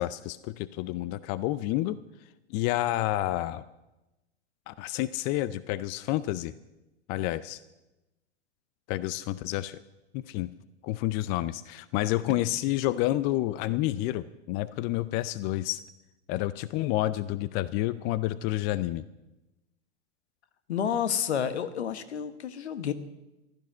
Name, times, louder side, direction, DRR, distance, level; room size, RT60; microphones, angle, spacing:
voice 1, 0.0-2.0 2.5-3.6 4.7-6.5 7.1-7.6 8.9-9.8 10.1-10.5 10.8-15.8 16.3-19.0, left 15 dB, 30° left, 17 dB, 0.4 m, -29 dB
voice 2, 20.7-22.9, left 8 dB, 65° left, 12 dB, 1.3 m, -30 dB
15.5 x 12.5 x 6.2 m, 1.0 s
figure-of-eight pair, 100°, 35 cm